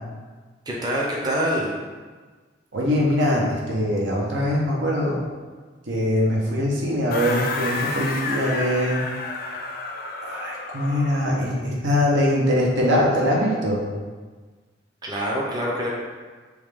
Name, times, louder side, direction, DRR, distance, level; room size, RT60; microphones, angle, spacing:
voice 1, 0.7-1.7 15.0-15.9, equal, 20° right, -4 dB, 0.6 m, -25 dB
voice 2, 2.7-5.2 5.9-9.0 10.2-13.8, left 1 dB, 75° right, -3 dB, 0.8 m, -22 dB
sound 1, 7.1-11.5, left 3 dB, 55° left, 0.5 m, -30 dB
3.6 x 3.1 x 3.4 m, 1.4 s
head